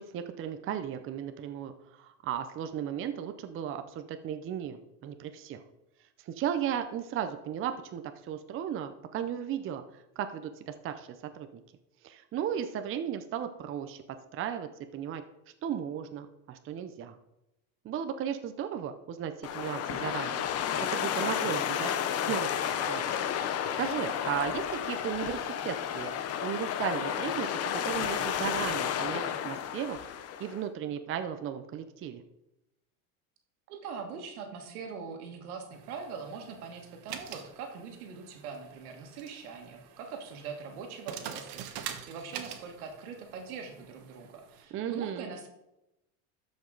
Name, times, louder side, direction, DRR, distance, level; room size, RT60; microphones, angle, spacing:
voice 1, 0.0-5.6 6.3-9.8 10.2-11.1 11.3-11.6 12.0-14.0 14.3-15.2 15.6-17.2 17.8-20.4 20.9-21.9 22.2-23.0 23.8-26.1 26.4-30.0 30.4-32.2 44.7-45.3, right 9 dB, 30° right, 8 dB, 0.6 m, -35 dB
sound 1, 19.4-30.6, left 9 dB, 35° left, 0.7 m, -32 dB
voice 2, 33.7-45.5, right 5 dB, 85° right, 5 dB, 1.8 m, -42 dB
sound 2, 35.7-44.6, right 9 dB, 55° right, 1.2 m, -46 dB
13.0 x 5.3 x 3.9 m, 0.92 s
supercardioid pair, 120°, 43 cm